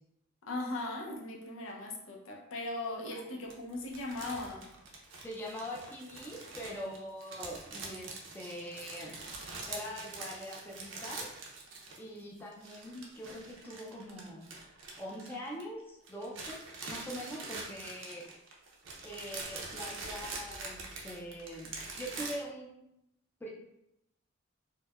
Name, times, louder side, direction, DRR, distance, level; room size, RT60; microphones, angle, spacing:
voice 1, 0.4-4.7 12.9-13.0, left 2 dB, 80° left, 0 dB, 0.6 m, -38 dB
sound 1, 3.5-12.2 12.5-15.8 16.1-22.4, right 3 dB, 65° right, 0.6 m, -44 dB
voice 2, 5.2-9.2 9.6-11.3 12.0-14.5 15.0-16.6 16.9-18.4 19.0-20.8 21.0-22.9 23.4-23.5, equal, 10° left, -3 dB, 0.4 m, -43 dB
4.5 x 2.1 x 2.3 m, 0.82 s
head